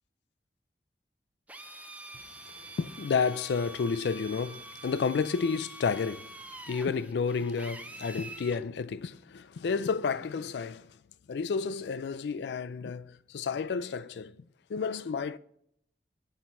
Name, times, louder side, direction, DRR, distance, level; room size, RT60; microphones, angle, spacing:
Drill, 1.5-8.6, right 1 dB, 10° right, 0.4 m, -46 dB
voice 1, 2.8-6.3 6.7-11.0 11.3-15.4, left 5 dB, 80° left, 0.4 m, -31 dB
8.0 x 4.4 x 4.1 m
head